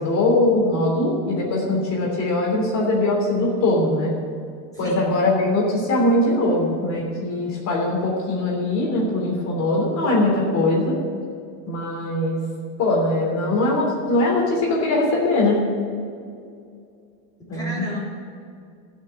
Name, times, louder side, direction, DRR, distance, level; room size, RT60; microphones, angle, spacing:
voice 1, 0.0-4.1 4.8-11.0 11.6-12.4 12.8-15.6 17.5-17.8, left 2 dB, 40° left, -2 dB, 3.3 m, -21 dB
voice 2, 4.7-5.1 6.9-7.0 17.4-18.0, left 1 dB, 10° left, -7 dB, 3.5 m, -33 dB
14.0 x 6.8 x 9.8 m, 2.4 s
supercardioid pair, 145°, 43 cm